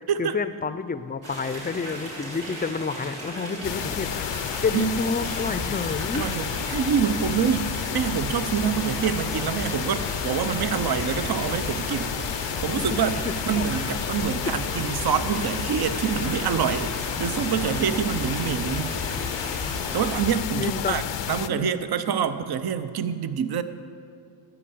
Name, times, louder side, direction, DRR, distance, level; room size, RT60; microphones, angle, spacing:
voice 1, 0.0-6.3 12.7-13.8 18.9-19.6 20.6-21.0 21.5-21.9, left 4 dB, 20° left, 13 dB, 0.5 m, -30 dB
sound 1, 1.2-20.3, right 1 dB, 85° right, 3.2 m, -37 dB
sound 2, 3.6-21.5, left 11 dB, 65° left, 0.6 m, -31 dB
sound 3, 5.3-20.6, right 1 dB, 30° right, 2.0 m, -39 dB
voice 2, 6.1-12.2 12.4-13.2 13.5-18.9 19.6-23.6, right 7 dB, 50° right, 11 dB, 0.7 m, -26 dB
13.0 x 5.6 x 8.4 m, 2.3 s
cardioid pair, 70°, 47 cm